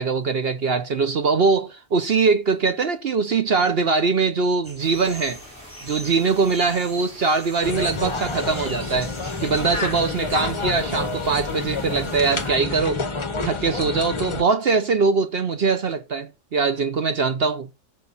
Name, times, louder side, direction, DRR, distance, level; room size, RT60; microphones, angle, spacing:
voice 1, 0.0-5.4 5.8-9.1 9.4-13.0 13.4-17.7, right 4 dB, 50° right, 0.7 m, -22 dB
sound 1, 4.6-10.0, left 1 dB, 5° right, 3.9 m, -42 dB
sound 2, 4.8-12.5, right 1 dB, 70° right, 5.8 m, -46 dB
sound 3, 7.6-14.4, left 3 dB, 25° left, 0.8 m, -28 dB
13.0 x 6.7 x 4.0 m
omnidirectional pair, 1.8 m